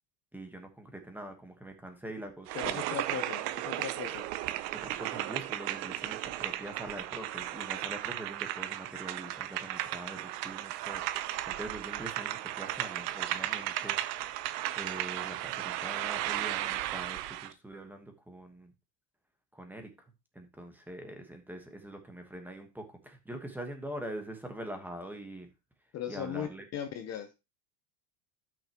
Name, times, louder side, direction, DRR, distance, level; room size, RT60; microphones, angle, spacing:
voice 1, 0.3-2.8 4.7-14.0 14.8-18.7 19.5-19.9 20.3-25.5 26.1-26.7, right 1 dB, 5° right, 5 dB, 1.3 m, -44 dB
voice 2, 2.5-4.2 25.9-27.3, left 10 dB, 35° left, 7 dB, 0.8 m, -38 dB
sound 1, 2.5-17.5, right 14 dB, 80° right, 0.9 m, -35 dB
12.5 x 5.9 x 3.0 m, 0.26 s
cardioid pair, 155°, 48 cm